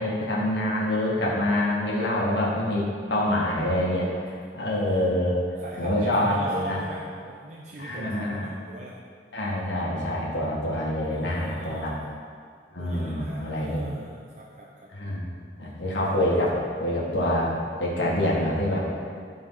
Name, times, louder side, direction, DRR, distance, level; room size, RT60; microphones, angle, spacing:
voice 1, 0.0-5.4 5.8-6.8 7.8-8.5 9.3-11.9 12.7-13.8 14.9-15.3 15.6-18.9, left 1 dB, 90° left, -5 dB, 1.8 m, -26 dB
voice 2, 4.0-4.4 4.7-5.1 5.6-9.0 11.1-12.0 12.8-14.9, right 1 dB, 40° right, -4 dB, 0.8 m, -40 dB
11.5 x 4.8 x 5.8 m, 2.1 s
head